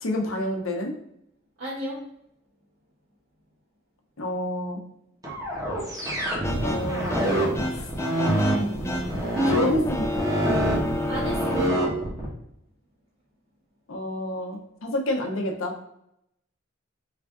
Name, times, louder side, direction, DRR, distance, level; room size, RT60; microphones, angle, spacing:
voice 1, 0.0-0.9 4.2-4.8 6.6-7.9 8.5-9.2 9.5-10.2 13.9-15.8, left 1 dB, 85° left, 2 dB, 0.7 m, -29 dB
voice 2, 1.6-2.0 11.1-11.9, right 1 dB, 85° right, -7 dB, 0.9 m, -33 dB
sound 1, 5.2-12.3, right 1 dB, 20° right, 0.8 m, -26 dB
sound 2, 6.4-11.7, left 1 dB, 15° left, 0.3 m, -30 dB
3.3 x 2.5 x 3.5 m, 0.77 s
head